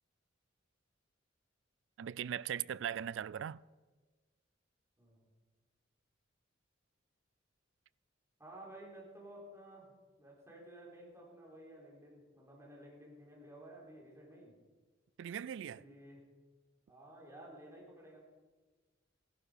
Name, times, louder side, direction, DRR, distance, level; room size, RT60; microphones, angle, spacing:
voice 1, 2.0-3.6 15.2-15.8, right 9 dB, 70° right, 0.3 m, -39 dB
voice 2, 5.0-5.3 8.4-9.9 10.2-14.6 15.6-16.2 16.9-18.2, right 1 dB, 15° right, 3.8 m, -54 dB
16.0 x 12.0 x 5.0 m
head